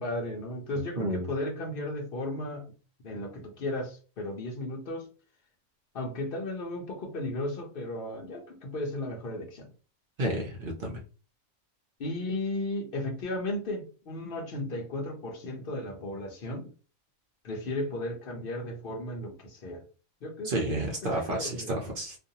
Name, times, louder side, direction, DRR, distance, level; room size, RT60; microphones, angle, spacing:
voice 1, 0.0-2.7 3.0-5.1 5.9-9.7 12.0-16.7 17.4-19.8 20.2-20.5 21.0-21.8, left 1 dB, 50° left, 0.8 m, -35 dB
voice 2, 1.0-1.3 10.2-11.0 20.4-22.2, right 1 dB, 60° right, 0.5 m, -31 dB
2.5 x 2.2 x 2.7 m
omnidirectional pair, 1.4 m